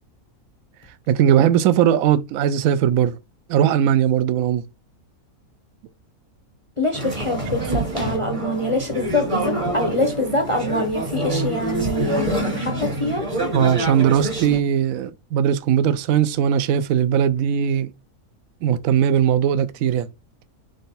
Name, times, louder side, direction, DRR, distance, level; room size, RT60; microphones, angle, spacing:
voice 1, 1.1-3.2 3.5-4.6 13.5-17.9 18.6-20.1, right 9 dB, 70° right, 0.9 m, -19 dB
voice 2, 6.8-13.3, left 1 dB, 35° left, 0.5 m, -24 dB
sound 1, 6.9-14.6, right 1 dB, 25° right, 1.0 m, -26 dB
3.8 x 3.4 x 4.1 m
omnidirectional pair, 1.7 m